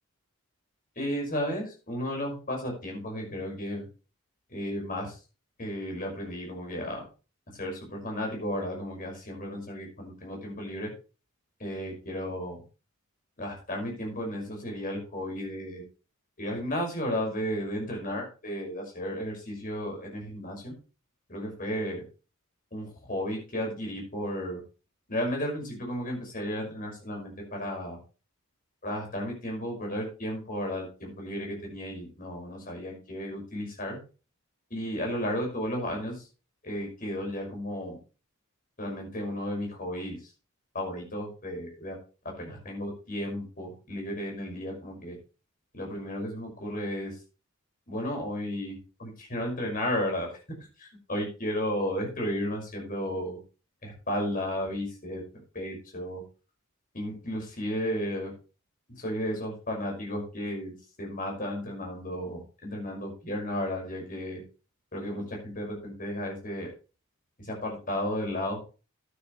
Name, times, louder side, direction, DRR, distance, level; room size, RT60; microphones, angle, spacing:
voice 1, 1.0-3.9 4.5-5.2 5.6-7.0 7.6-10.9 11.6-12.6 13.4-15.8 16.4-20.7 21.3-22.0 22.7-24.6 25.1-28.0 28.8-34.0 34.7-36.2 36.6-38.0 38.8-40.3 40.7-42.0 42.4-45.2 45.7-47.1 47.9-50.3 50.8-53.4 53.8-55.2 55.5-56.2 56.9-58.3 58.9-60.7 61.0-64.4 64.9-66.7 67.4-68.6, equal, 40° left, 0 dB, 5.8 m, -33 dB
12.0 x 9.9 x 3.2 m, 0.33 s
head